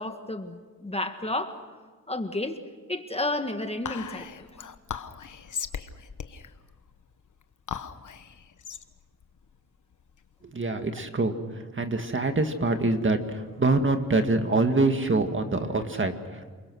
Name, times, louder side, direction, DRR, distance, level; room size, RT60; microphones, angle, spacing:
voice 1, 0.0-1.6 2.1-2.6 2.9-4.3, left 2 dB, 20° left, 7 dB, 1.6 m, -31 dB
Whispering, 3.8-10.5, left 7 dB, 65° left, 1.2 m, -39 dB
voice 2, 10.4-16.5, right 2 dB, 35° right, 6 dB, 2.1 m, -25 dB
29.0 x 22.0 x 6.3 m, 1.5 s
wide cardioid pair, 90°, 34 cm